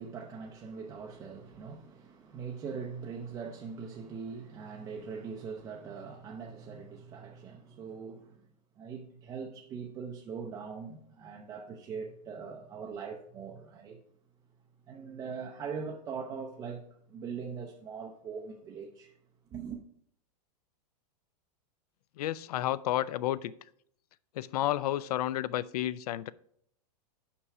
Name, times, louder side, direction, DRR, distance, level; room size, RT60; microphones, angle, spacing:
voice 1, 0.0-8.5 8.8-14.0 14.9-19.2 19.5-19.8, right 5 dB, 15° right, 0.4 m, -41 dB
voice 2, 22.2-23.5 24.4-26.3, left 13 dB, 65° left, 0.4 m, -31 dB
5.8 x 5.4 x 4.7 m
supercardioid pair, 160°, 21 cm